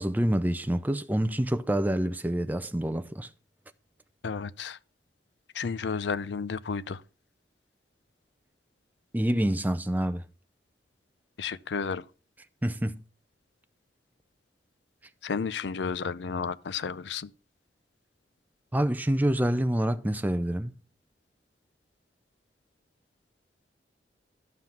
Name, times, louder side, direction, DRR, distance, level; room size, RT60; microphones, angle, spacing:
voice 1, 0.0-3.3 9.1-10.3 12.6-13.0 18.7-20.8, right 1 dB, 10° right, 0.5 m, -27 dB
voice 2, 4.2-4.8 5.5-7.0 11.4-12.0 15.2-17.3, left 5 dB, 80° left, 0.5 m, -32 dB
12.0 x 5.7 x 5.9 m
head